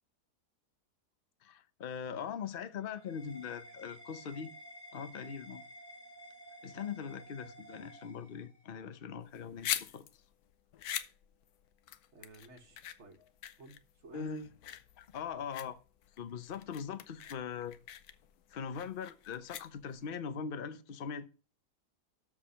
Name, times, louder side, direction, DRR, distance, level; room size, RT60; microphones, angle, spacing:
voice 1, 1.4-4.5 4.9-5.7 6.6-10.1 14.1-14.5 15.0-15.8 16.2-17.8 18.5-21.3, left 7 dB, 45° left, 0.8 m, -41 dB
sound 1, 2.3-8.8, right 1 dB, 25° left, 3.2 m, -53 dB
sound 2, 9.2-20.1, left 11 dB, 75° left, 1.2 m, -43 dB
voice 2, 12.1-13.2 13.6-14.4, right 3 dB, 45° right, 1.7 m, -54 dB
13.0 x 4.8 x 5.6 m
omnidirectional pair, 1.7 m